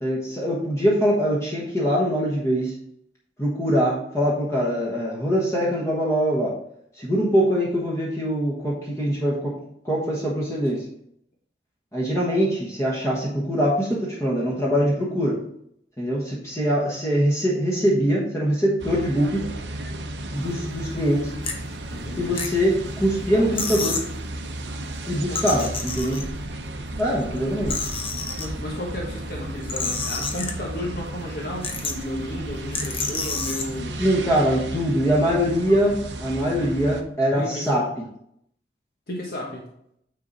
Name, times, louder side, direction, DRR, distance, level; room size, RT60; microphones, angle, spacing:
voice 1, 0.0-2.7 3.4-6.5 7.0-9.5 9.8-10.8 11.9-15.4 16.0-19.4 20.3-21.3 22.2-22.7 23.0-24.0 25.1-26.2 27.0-27.7 34.0-37.8, equal, 15° left, -5 dB, 1.3 m, -23 dB
sound 1, 18.8-37.0, right 1 dB, 85° right, 0.8 m, -34 dB
sound 2, 20.8-21.0 21.4-21.5 22.1-22.9 23.2-23.3 23.5-24.1 25.2-26.5 27.1-28.5 29.4-30.8 31.2-31.3 31.6-32.1 32.7-33.7, left 4 dB, 30° left, 0.9 m, -30 dB
voice 2, 21.9-22.4 23.3-23.9 25.3-25.7 28.4-34.0 37.3-37.9 39.1-39.7, left 1 dB, 60° left, -2 dB, 1.4 m, -33 dB
9.2 x 4.0 x 4.1 m, 0.72 s
head